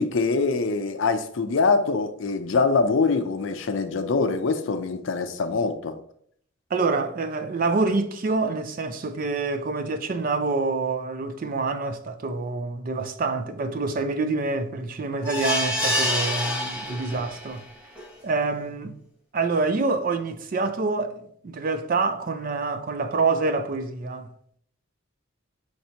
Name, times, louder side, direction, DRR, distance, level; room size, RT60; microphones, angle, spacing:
voice 1, 0.0-6.0, left 4 dB, 65° left, 0.5 m, -24 dB
voice 2, 6.7-17.7 18.2-19.0 19.3-24.3, right 3 dB, 40° right, 0.4 m, -26 dB
sound 1, 15.2-17.5 18.0-18.1 18.4-18.5, left 1 dB, 5° right, 0.9 m, -26 dB
5.6 x 3.2 x 2.8 m
head